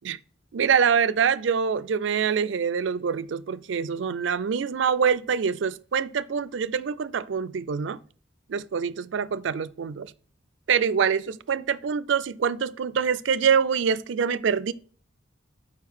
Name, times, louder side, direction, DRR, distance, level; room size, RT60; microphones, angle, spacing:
voice 1, 0.5-8.0 8.5-10.1 10.7-14.7, right 6 dB, 70° right, 0.4 m, -25 dB
5.7 x 4.7 x 6.1 m
head